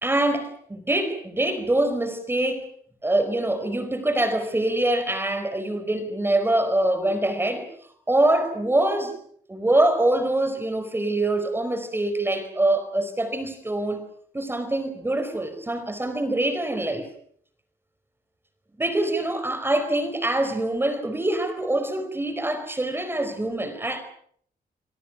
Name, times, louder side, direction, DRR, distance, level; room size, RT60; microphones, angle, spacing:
voice 1, 0.0-2.7 3.0-7.7 8.1-9.1 9.5-14.0 14.3-17.1 18.8-24.0, right 1 dB, 15° right, 9 dB, 4.7 m, -24 dB
29.5 x 23.0 x 6.1 m, 0.63 s
wide cardioid pair, 155°, 16 cm